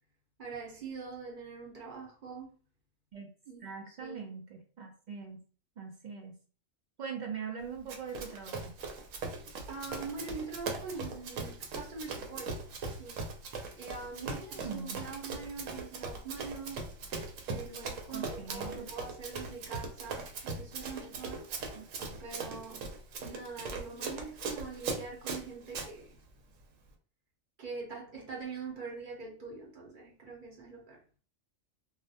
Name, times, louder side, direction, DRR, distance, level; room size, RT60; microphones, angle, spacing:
voice 1, 0.4-2.6 3.5-4.3 9.7-12.6 12.9-13.2 13.7-16.9 17.5-21.5 22.2-26.1 27.6-31.2, right 4 dB, 45° right, 0.8 m, -43 dB
voice 2, 3.6-5.4 5.8-6.4 7.0-8.8 14.2-15.0 18.1-18.9 21.7-22.2, right 6 dB, 70° right, 0.4 m, -42 dB
Run, 7.9-25.9, right 4 dB, 90° right, 1.0 m, -40 dB
2.3 x 2.1 x 2.6 m
omnidirectional pair, 1.3 m